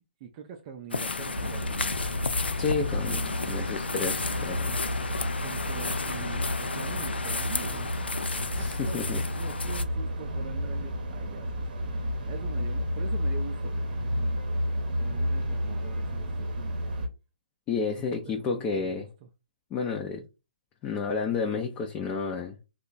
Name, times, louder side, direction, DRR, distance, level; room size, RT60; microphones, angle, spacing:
voice 1, 0.2-1.9 2.6-4.0 4.3-4.6 5.4-11.5 11.9-14.5 15.0-16.9 18.0-19.1, right 7 dB, 30° right, 0.4 m, -44 dB
sound 1, 0.9-9.8, left 4 dB, 80° left, 0.4 m, -32 dB
sound 2, 1.3-17.1, equal, 55° right, 0.8 m, -32 dB
voice 2, 2.6-3.2 3.5-4.8 8.5-9.2 17.7-19.1 19.7-20.2 20.8-22.6, left 5 dB, 20° left, 0.5 m, -31 dB
2.9 x 2.3 x 3.9 m
figure-of-eight pair, 135°, 6 cm